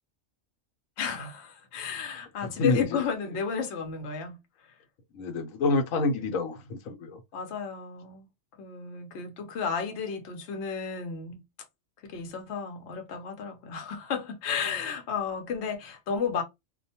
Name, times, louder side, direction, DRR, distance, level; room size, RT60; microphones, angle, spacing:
voice 1, 1.0-4.7 7.3-8.3 8.6-11.4 12.0-16.4, left 6 dB, 65° left, 0.9 m, -33 dB
voice 2, 2.4-3.0 5.1-7.2, left 3 dB, 90° left, 1.1 m, -28 dB
2.4 x 2.1 x 2.7 m
omnidirectional pair, 1.3 m